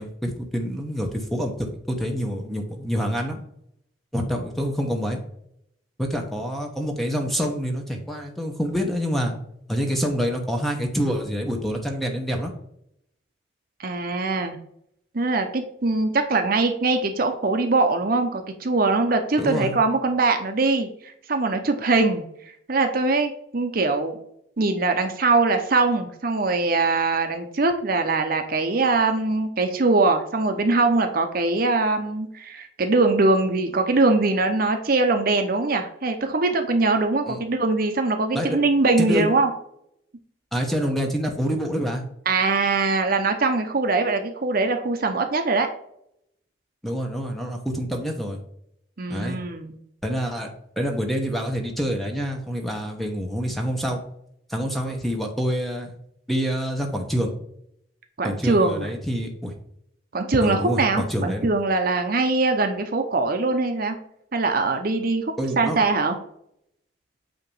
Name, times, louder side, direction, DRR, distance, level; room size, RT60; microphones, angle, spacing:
voice 1, 0.0-3.4 4.1-5.2 6.0-9.3 9.7-12.5 19.4-19.8 37.3-37.4 38.3-38.6 39.0-39.3 40.5-42.0 46.8-48.4 49.1-49.4 50.0-50.5 50.8-54.0 54.5-55.9 56.3-57.3 58.2-59.5 60.4-61.5 65.4-65.8, equal, ahead, 2 dB, 1.0 m, -26 dB
voice 2, 13.8-14.6 15.1-22.3 22.7-24.2 24.6-39.5 42.3-45.7 49.0-49.7 58.2-58.9 60.1-64.0 64.3-66.2, right 3 dB, 45° right, 6 dB, 0.7 m, -22 dB
8.7 x 2.9 x 5.4 m, 0.72 s
head